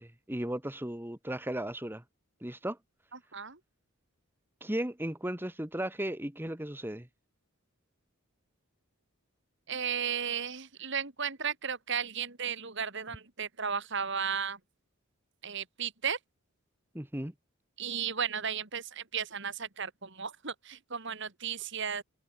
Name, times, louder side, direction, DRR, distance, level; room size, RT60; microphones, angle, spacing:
voice 1, 0.0-2.0 2.4-2.8 4.6-7.1 16.9-17.3, right 1 dB, 10° right, 1.3 m, -35 dB
voice 2, 3.1-3.6 9.7-14.6 15.4-16.2 17.8-22.0, right 7 dB, 55° right, 2.6 m, -34 dB
head